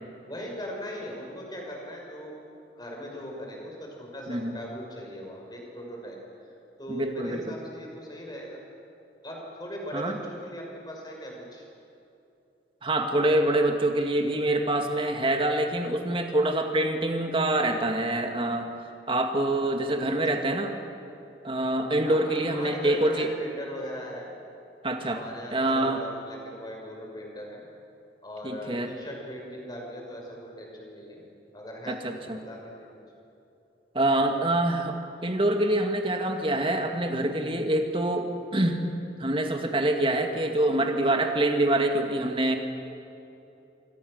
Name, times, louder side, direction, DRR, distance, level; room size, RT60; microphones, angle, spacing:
voice 1, 0.3-2.3 2.8-6.2 6.8-8.6 9.2-11.7 20.3-20.4 22.0-24.3 25.1-27.6 28.2-31.2 31.5-32.9, equal, 25° left, -1 dB, 6.1 m, -39 dB
voice 2, 6.9-7.6 9.9-10.2 12.8-18.7 19.1-20.7 21.4-23.3 24.8-25.2 25.5-26.0 28.4-28.9 31.9-32.5 33.9-38.9 39.2-42.6, right 1 dB, 30° right, 4 dB, 2.2 m, -25 dB
27.5 x 25.0 x 6.7 m, 2.8 s
head